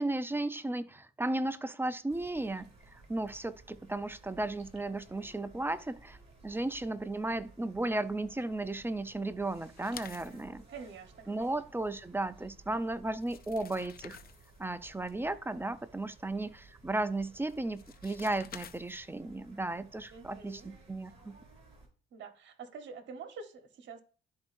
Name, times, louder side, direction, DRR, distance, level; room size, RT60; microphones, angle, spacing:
voice 1, 0.0-6.2 6.4-10.6 11.3-14.2 14.6-21.4, right 2 dB, 10° right, 0.5 m, -35 dB
sound 1, 2.1-21.9, right 3 dB, 35° right, 3.4 m, -58 dB
sound 2, 9.8-10.5 12.7-12.8 13.1-14.6 17.5-19.2, left 8 dB, 50° left, 0.6 m, -49 dB
voice 2, 10.7-11.5 20.1-20.7 22.1-24.0, right 5 dB, 65° right, 1.2 m, -47 dB
11.5 x 4.7 x 2.6 m
cardioid pair, 90°, 20 cm